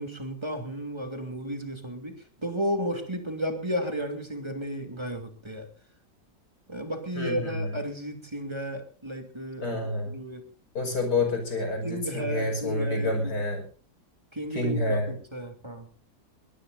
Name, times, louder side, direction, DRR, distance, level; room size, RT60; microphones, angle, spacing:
voice 1, 0.0-2.1 2.4-5.7 6.7-10.4 11.8-13.3 14.3-15.9, equal, 15° right, 5 dB, 2.9 m, -33 dB
voice 2, 7.1-7.7 9.6-10.2 10.7-13.6 14.5-15.1, left 2 dB, 70° left, 4 dB, 6.4 m, -28 dB
22.0 x 21.0 x 2.7 m, 0.37 s
omnidirectional pair, 1.8 m